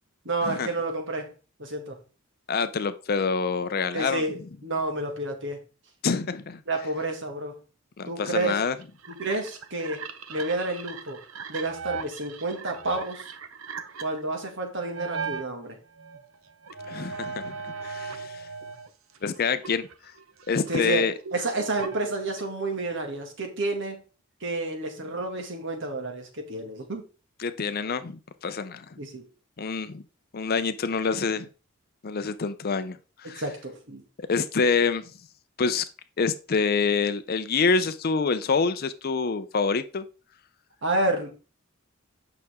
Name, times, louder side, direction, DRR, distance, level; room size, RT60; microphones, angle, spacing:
voice 1, 0.3-1.3 1.6-2.0 3.9-5.6 6.7-7.6 8.1-8.6 9.1-10.0 10.3-11.2 11.5-13.3 14.0-15.8 20.7-24.0 24.4-27.0 29.0-29.3 33.2-34.0 40.8-41.3, right 2 dB, 60° right, 2.1 m, -30 dB
voice 2, 2.5-4.2 6.0-6.6 8.0-8.8 16.9-18.4 19.2-19.9 20.5-21.1 27.4-28.9 29.6-30.0 30.3-31.5 32.0-33.4 34.2-35.0 35.6-35.8 36.2-40.0, left 5 dB, 50° left, 0.5 m, -26 dB
sound 1, 8.4-15.5 16.0-18.9 19.1-22.7, right 5 dB, 85° right, 0.9 m, -38 dB
9.1 x 6.0 x 3.6 m
head